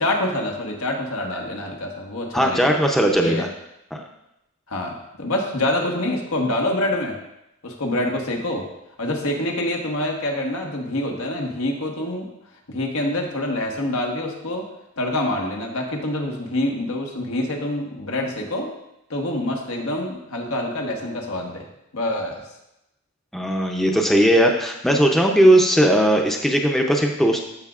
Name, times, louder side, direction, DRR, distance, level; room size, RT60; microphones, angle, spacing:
voice 1, 0.0-2.7 3.2-3.5 4.7-7.2 7.6-8.7 9.0-12.3 12.7-14.7 15.0-18.7 19.1-21.7 21.9-22.4, left 1 dB, 90° left, 1 dB, 1.3 m, -26 dB
voice 2, 2.3-3.5 3.9-4.0 23.3-27.4, right 1 dB, ahead, 1 dB, 0.5 m, -18 dB
14.0 x 5.1 x 2.4 m, 0.88 s
head